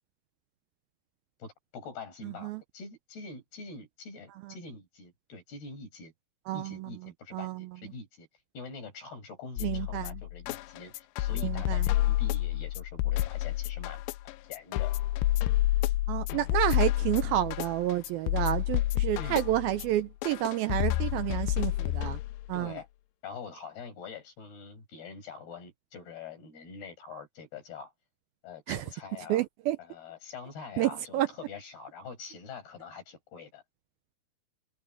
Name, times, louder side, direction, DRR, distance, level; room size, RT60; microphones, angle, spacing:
voice 1, 1.4-6.1 6.5-8.3 8.5-14.0 14.5-15.0 19.2-19.4 22.5-22.9 23.2-27.9 28.4-29.4 29.8-33.6, left 4 dB, 70° left, 9.1 m, -44 dB
voice 2, 2.2-2.6 4.4-4.5 6.5-6.9 7.3-7.7 9.6-10.2 11.4-11.9 16.1-22.2 22.5-22.7 28.7-28.8 29.3-29.8 30.8-31.3, right 14 dB, 80° right, 2.3 m, -30 dB
sound 1, 9.6-22.6, left 15 dB, 85° left, 2.8 m, -29 dB
omnidirectional pair, 4.7 m